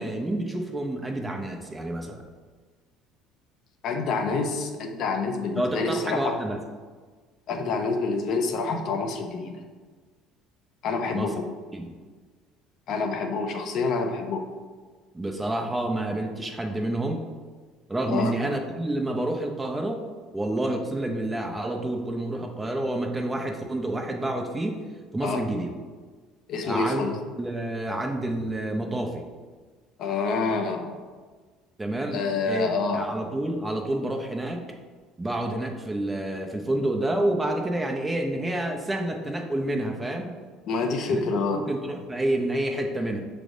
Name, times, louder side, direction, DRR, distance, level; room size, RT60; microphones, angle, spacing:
voice 1, 0.0-2.2 5.6-6.6 11.1-11.3 11.7-11.9 15.1-17.2 17.9-20.0 20.3-24.8 25.1-25.7 26.6-27.1 27.4-29.2 31.8-34.6 35.2-40.3 41.1-41.2 41.5-43.2, right 1 dB, 15° right, 2 dB, 0.5 m, -28 dB
voice 2, 3.8-6.4 7.5-9.6 10.8-11.5 12.9-14.5 18.1-18.3 25.2-25.4 26.5-27.1 30.0-30.9 32.1-33.1 40.7-41.6, left 4 dB, 60° left, 4 dB, 0.5 m, -27 dB
6.0 x 3.3 x 2.6 m, 1.5 s
cardioid pair, 115°, 0 cm